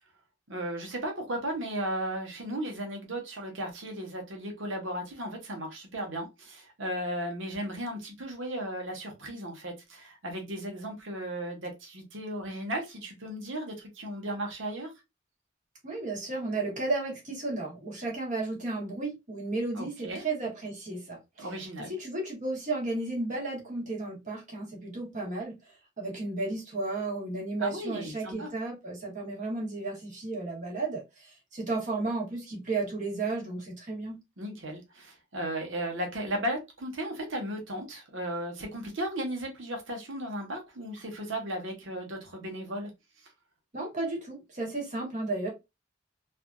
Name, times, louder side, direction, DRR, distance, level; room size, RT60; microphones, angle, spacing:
voice 1, 0.5-14.9 19.8-20.2 21.4-21.9 27.6-28.5 34.4-42.9, right 1 dB, 75° right, 1.1 m, -35 dB
voice 2, 15.8-21.5 21.8-25.6 26.0-34.2 43.7-45.5, right 3 dB, 40° right, 1.2 m, -33 dB
3.3 x 2.5 x 2.2 m
head